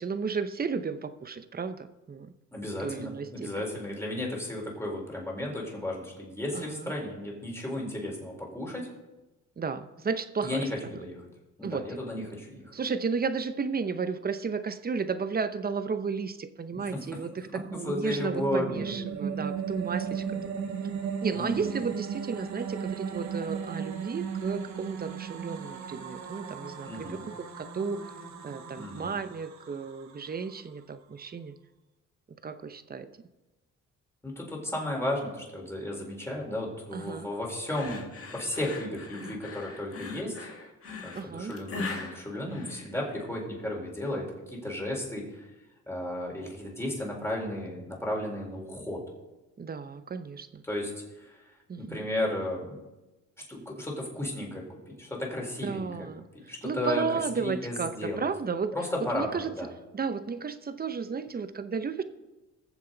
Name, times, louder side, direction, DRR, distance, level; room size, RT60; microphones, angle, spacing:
voice 1, 0.0-2.3 2.8-3.5 6.5-6.9 9.6-11.0 11.6-12.2 12.7-20.2 21.2-28.1 28.4-31.6 32.4-33.1 36.9-37.3 41.1-41.6 49.6-50.6 51.7-52.1 55.6-58.8 59.1-59.6 59.9-62.0, right 5 dB, 30° right, 11 dB, 0.8 m, -33 dB
voice 2, 2.5-8.9 10.4-11.2 11.6-12.7 16.7-17.0 17.7-18.9 21.3-21.8 26.9-27.2 28.8-29.1 34.2-40.5 41.0-45.5 45.9-49.0 50.7-50.9 51.2-51.4 51.8-52.8 53.5-56.1 56.3-57.0 57.4-58.2 58.7-59.7, left 1 dB, 10° left, -2 dB, 4.3 m, -34 dB
sound 1, 17.3-30.6, right 7 dB, 65° right, 1.4 m, -36 dB
sound 2, 37.7-43.3, left 3 dB, 45° left, 2.0 m, -40 dB
21.0 x 7.3 x 4.0 m, 1.1 s
cardioid pair, 90°, 30 cm